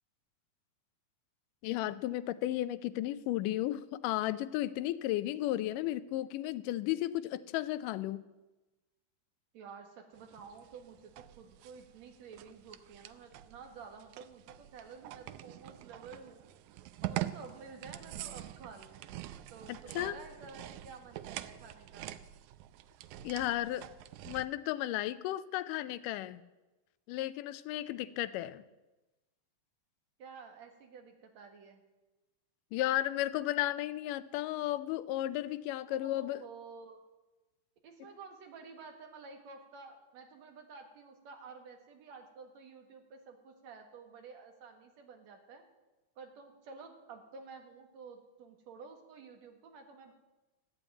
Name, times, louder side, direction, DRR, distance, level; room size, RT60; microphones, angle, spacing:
voice 1, 1.6-8.2 19.7-20.2 23.2-23.9 24.3-26.4 27.1-28.6 32.7-36.5 38.0-38.1, left 14 dB, 80° left, 14 dB, 2.1 m, -34 dB
voice 2, 9.5-16.5 17.0-19.0 19.5-22.2 30.2-31.8 35.9-37.0 37.8-45.6 46.2-50.1, right 5 dB, 55° right, 4 dB, 2.7 m, -51 dB
sound 1, 10.2-24.5, right 14 dB, 80° right, 1.8 m, -45 dB
14.5 x 9.0 x 8.8 m, 1.1 s
omnidirectional pair, 4.0 m